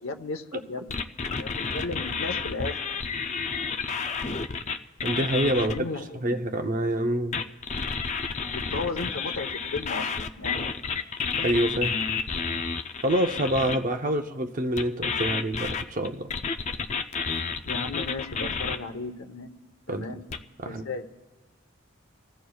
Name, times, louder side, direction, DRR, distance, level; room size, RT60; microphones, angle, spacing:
voice 1, 0.0-1.0 1.4-2.8 5.5-6.4 8.5-10.7 14.0-14.2 17.6-19.5 19.9-20.2 20.6-21.1, left 3 dB, 75° left, 1.0 m, -35 dB
sound 1, 0.9-5.8 7.3-13.8 14.8-18.8 20.3-20.4, left 5 dB, 35° left, 0.5 m, -30 dB
voice 2, 5.0-5.9 6.2-7.4 11.4-12.0 13.0-16.3 19.9-20.1 20.6-20.8, right 1 dB, 40° right, 0.7 m, -26 dB
28.0 x 15.5 x 2.3 m
head